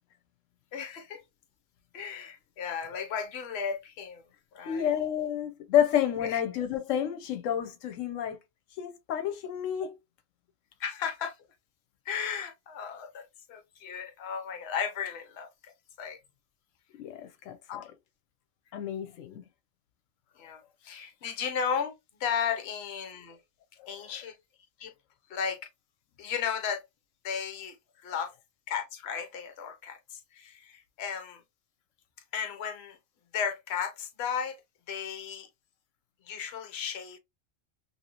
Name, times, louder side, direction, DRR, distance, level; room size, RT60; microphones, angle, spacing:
voice 1, 0.7-1.2 1.9-4.2 4.5-4.9 6.2-6.4 10.8-11.4 12.1-16.2 17.7-17.8 20.4-23.4 23.9-24.4 24.8-24.9 25.3-25.6 26.2-26.8 27.2-27.8 28.0-28.3 28.7-31.4 32.3-33.0 33.3-34.6 34.9-35.5 36.2-37.2, left 7 dB, 60° left, 0.9 m, -35 dB
voice 2, 4.6-8.4 8.8-9.9 17.0-17.8 18.7-19.4 23.8-23.9, left 10 dB, 85° left, 1.0 m, -30 dB
2.9 x 2.8 x 2.8 m
omnidirectional pair, 1.3 m